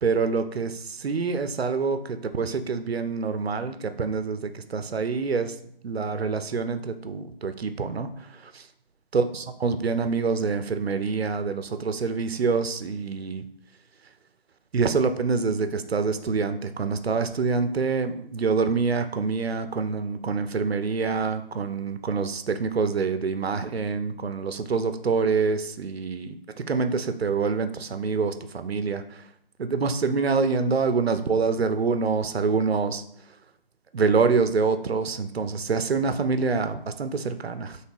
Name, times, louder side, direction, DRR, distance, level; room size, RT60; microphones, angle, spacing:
voice 1, 0.0-5.6 5.8-8.7 9.1-13.5 14.7-29.3 29.6-33.0 33.9-37.8, right 4 dB, 80° right, 9 dB, 0.6 m, -26 dB
3.2 x 2.9 x 4.5 m, 0.68 s
figure-of-eight pair, 170°, 30 cm